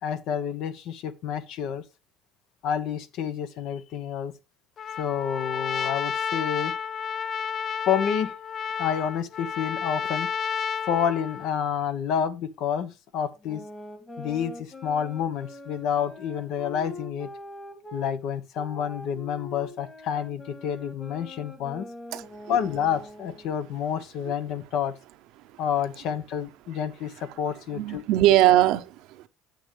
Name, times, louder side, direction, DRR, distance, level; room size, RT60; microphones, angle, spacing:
voice 1, 0.0-1.8 2.6-4.3 5.0-6.8 7.9-8.3 8.8-10.3 10.8-13.6 14.2-17.3 17.9-21.9 22.5-24.9 25.6-28.0, left 8 dB, 70° left, 1.1 m, -29 dB
Trumpet, 4.8-11.6, left 7 dB, 45° left, 0.5 m, -31 dB
sound 1, 13.4-18.1 18.5-23.5, left 2 dB, 25° left, 1.9 m, -43 dB
voice 2, 22.1-22.6 27.7-29.3, right 14 dB, 70° right, 0.7 m, -21 dB
9.1 x 7.9 x 3.3 m
supercardioid pair, 90°, 0 cm